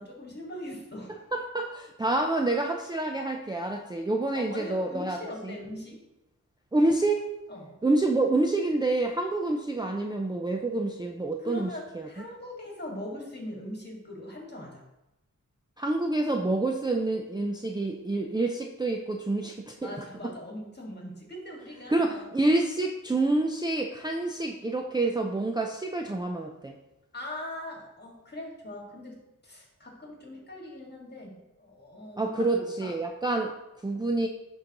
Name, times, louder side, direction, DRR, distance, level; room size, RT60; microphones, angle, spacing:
voice 1, 0.0-1.2 4.3-6.0 7.5-7.7 11.4-14.8 19.8-22.2 27.1-33.0, left 1 dB, 30° left, -2 dB, 1.9 m, -41 dB
voice 2, 1.3-5.2 5.4-5.5 6.7-7.2 7.8-12.1 15.8-19.9 21.9-26.7 32.2-34.3, right 2 dB, 15° right, 2 dB, 0.4 m, -27 dB
11.0 x 3.8 x 3.0 m, 0.93 s
wide cardioid pair, 80°, 32 cm